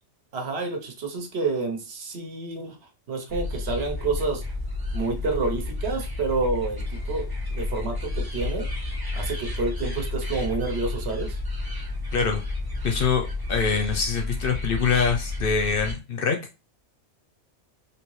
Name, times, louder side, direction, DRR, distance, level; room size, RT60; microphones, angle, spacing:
voice 1, 0.3-2.8 3.1-4.4 4.9-8.7 9.1-11.4, right 3 dB, 65° right, 3 dB, 1.1 m, -29 dB
sound 1, 3.3-15.9, left 2 dB, 20° right, 0.8 m, -31 dB
voice 2, 12.8-16.4, left 5 dB, 60° left, 3 dB, 0.6 m, -24 dB
3.3 x 2.7 x 3.1 m, 0.30 s
omnidirectional pair, 1.2 m